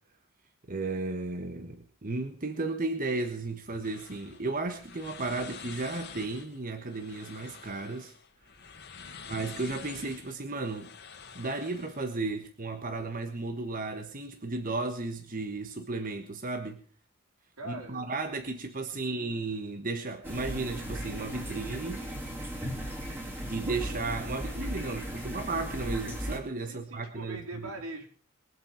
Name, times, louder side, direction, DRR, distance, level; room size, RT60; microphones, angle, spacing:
voice 1, 0.7-8.1 9.3-10.9 11.3-16.8 17.6-22.1 23.5-27.7, right 3 dB, 40° right, 6 dB, 1.3 m, -34 dB
sound 1, 3.8-12.2, left 6 dB, 50° left, 1.9 m, -48 dB
voice 2, 9.0-9.4 17.6-18.0 19.0-19.4 22.8-23.3 26.6-28.1, right 2 dB, 85° right, 0 dB, 4.2 m, -43 dB
sound 2, 20.2-26.4, equal, 10° right, 3.2 m, -37 dB
22.0 x 8.4 x 5.8 m, 0.43 s
head